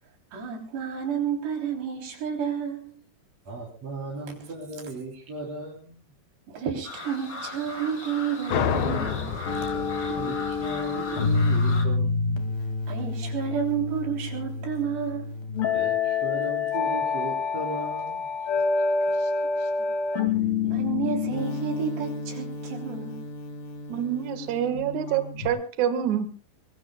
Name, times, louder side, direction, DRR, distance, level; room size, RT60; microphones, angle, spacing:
voice 1, 0.3-3.0 6.5-9.7 12.9-15.3 19.2-19.3 19.6-19.7 20.6-23.2, right 8 dB, 75° right, 2 dB, 5.6 m, -31 dB
voice 2, 3.4-6.0 9.7-12.4 15.7-18.3, right 2 dB, 40° right, -5 dB, 4.7 m, -37 dB
sound 1, 6.8-11.8, left 2 dB, 25° left, 2.5 m, -38 dB
sound 2, 8.5-11.8, left 8 dB, 80° left, 3.6 m, -30 dB
sound 3, 9.5-25.5, left 4 dB, 60° left, 3.8 m, -28 dB
voice 3, 23.9-26.3, right 9 dB, 55° right, 9 dB, 2.5 m, -27 dB
23.5 x 22.5 x 2.3 m, 0.36 s
omnidirectional pair, 4.9 m